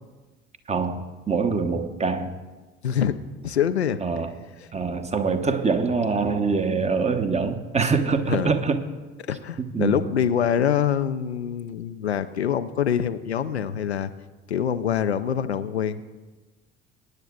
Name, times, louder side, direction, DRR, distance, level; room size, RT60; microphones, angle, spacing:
voice 1, 0.7-2.3 4.0-4.3 4.7-8.8 9.6-10.0, right 4 dB, 20° right, 8 dB, 0.9 m, -24 dB
voice 2, 2.8-4.0 4.6-4.7 8.3-8.6 9.3-14.1 14.5-16.0, left 8 dB, 85° left, 10 dB, 0.5 m, -25 dB
22.5 x 9.8 x 2.4 m, 1.3 s
figure-of-eight pair, 55°, 32 cm